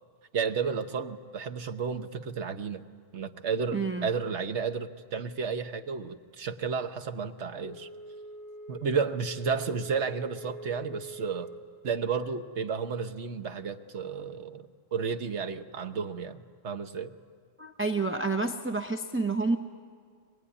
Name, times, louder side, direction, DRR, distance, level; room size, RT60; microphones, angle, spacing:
voice 1, 0.3-2.8 3.1-7.9 8.7-11.5 11.8-17.1, right 5 dB, 60° right, 7 dB, 1.3 m, -32 dB
voice 2, 3.7-4.1 17.6-19.6, right 3 dB, 15° right, 6 dB, 0.6 m, -29 dB
Wind instrument woodwind instrument, 7.6-11.7, right 2 dB, 50° left, 2.9 m, -44 dB
23.5 x 20.5 x 9.9 m, 2.1 s
omnidirectional pair, 1.3 m